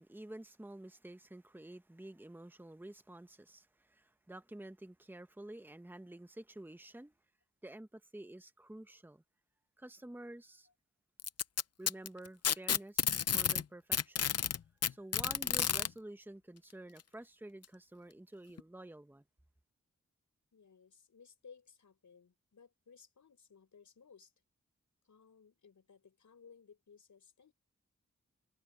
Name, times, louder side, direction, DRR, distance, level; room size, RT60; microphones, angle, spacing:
voice 1, 0.0-7.1 7.6-9.2 9.8-10.7 11.8-14.3 14.9-19.2, right 1 dB, 5° right, 1.1 m, -50 dB
Packing tape duct tape, 11.2-13.6 13.9-15.9 17.0-17.1 17.6-17.7 18.6-18.7, left 8 dB, 55° left, 0.6 m, -31 dB
voice 2, 20.5-24.3 25.0-27.5, left 6 dB, 80° left, 6.5 m, -60 dB
wide cardioid pair, 75°, 29 cm